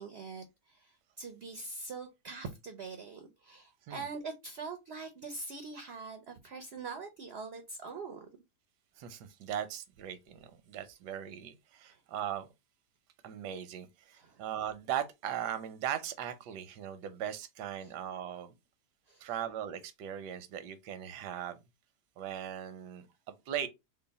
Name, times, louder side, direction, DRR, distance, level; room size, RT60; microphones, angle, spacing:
voice 1, 0.0-8.3 11.8-12.0 14.1-14.4 17.8-17.9 19.1-19.3, right 4 dB, 70° right, 0.6 m, -43 dB
voice 2, 9.0-12.5 13.2-18.5 19.2-21.6 22.2-23.1 23.5-23.7, right 10 dB, 85° right, 1.2 m, -39 dB
3.8 x 2.1 x 3.9 m
omnidirectional pair, 1.7 m